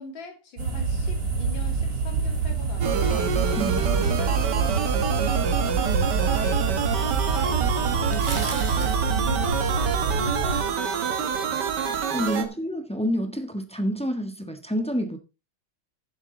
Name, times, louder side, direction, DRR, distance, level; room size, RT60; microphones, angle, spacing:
voice 1, 0.0-5.8 6.2-8.3 8.5-11.8 12.2-12.5, left 3 dB, 60° left, 3.2 m, -42 dB
sound 1, 0.6-10.6, right 4 dB, 85° right, 4.2 m, -26 dB
sound 2, 2.8-12.5, right 7 dB, 55° right, 1.7 m, -27 dB
voice 2, 3.6-3.9 11.2-11.3 12.1-15.2, equal, 5° left, 1.0 m, -28 dB
sound 3, 6.0-6.1 7.1-7.2 8.0-9.0 9.5-10.1, right 3 dB, 25° right, 1.6 m, -35 dB
13.0 x 7.4 x 3.9 m
omnidirectional pair, 2.4 m